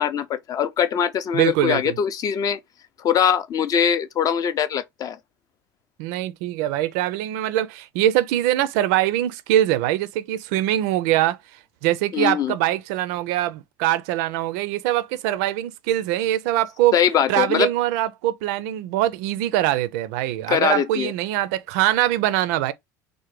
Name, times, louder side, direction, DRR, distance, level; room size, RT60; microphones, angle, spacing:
voice 1, 0.0-2.6 3.0-5.2 12.1-12.5 16.9-17.7 20.5-21.1, left 8 dB, 35° left, 0.4 m, -22 dB
voice 2, 1.3-2.0 6.0-11.4 11.8-17.0 17.3-22.7, right 13 dB, 60° right, 0.4 m, -23 dB
3.7 x 2.0 x 3.1 m
figure-of-eight pair, 70°, 10 cm